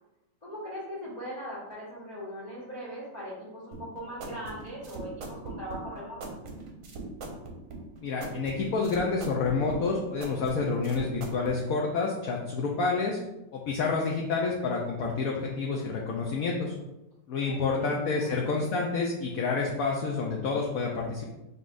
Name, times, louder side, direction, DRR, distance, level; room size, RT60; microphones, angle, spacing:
voice 1, 0.4-6.3 17.4-17.9 18.2-18.4, equal, 30° left, -8 dB, 1.0 m, -40 dB
sound 1, 3.7-11.6, right 3 dB, 60° right, 1.0 m, -41 dB
voice 2, 8.0-13.2 13.5-16.8 17.3-21.3, left 4 dB, 70° left, -1 dB, 0.9 m, -29 dB
5.3 x 3.3 x 2.5 m, 0.94 s
omnidirectional pair, 1.8 m